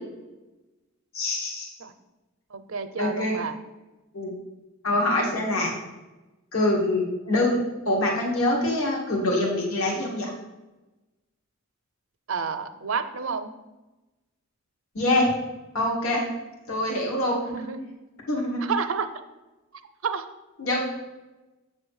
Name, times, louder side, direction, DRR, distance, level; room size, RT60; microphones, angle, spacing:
voice 1, 1.1-1.7 3.0-3.4 4.1-4.3 4.8-5.7 6.5-10.3 15.0-15.3 15.7-16.2 16.7-17.4 18.3-18.7 20.6-20.8, left 1 dB, 80° left, -1 dB, 1.6 m, -24 dB
voice 2, 2.5-3.6 12.3-13.5 17.5-17.8 18.6-19.1 20.0-20.3, right 5 dB, 70° right, 10 dB, 0.5 m, -29 dB
7.7 x 3.2 x 6.3 m, 1.1 s
head